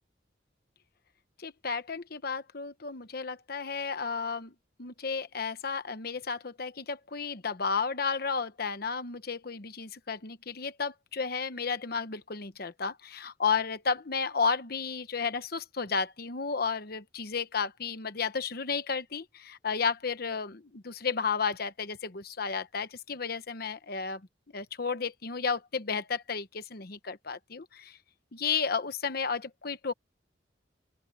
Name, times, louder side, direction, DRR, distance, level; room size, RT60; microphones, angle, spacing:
voice 1, 1.4-4.5 4.8-24.2 24.5-28.0 28.3-29.9, left 5 dB, 55° left, 1.0 m, -33 dB
open air
head